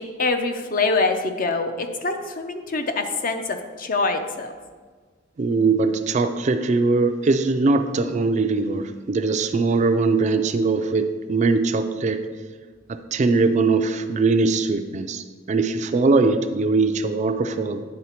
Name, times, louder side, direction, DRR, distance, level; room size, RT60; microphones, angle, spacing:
voice 1, 0.0-4.5, left 3 dB, 45° left, 6 dB, 0.6 m, -25 dB
voice 2, 5.4-12.2 12.9-17.8, right 3 dB, 40° right, 8 dB, 0.4 m, -21 dB
9.5 x 3.9 x 4.3 m, 1.5 s
head